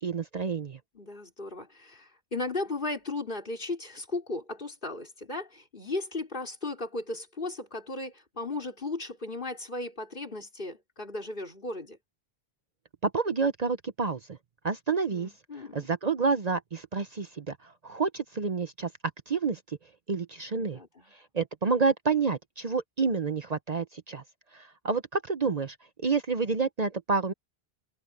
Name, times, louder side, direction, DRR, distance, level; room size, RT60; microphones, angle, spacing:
voice 1, 0.0-0.8 13.0-14.2 14.6-15.3 15.7-18.9 19.3-19.8 20.1-20.8 21.3-24.2 24.5-27.3, right 4 dB, 45° right, 0.8 m, -29 dB
voice 2, 0.9-12.0 15.1-15.9 20.5-21.1, left 2 dB, 55° left, 4.5 m, -36 dB
omnidirectional pair, 1.0 m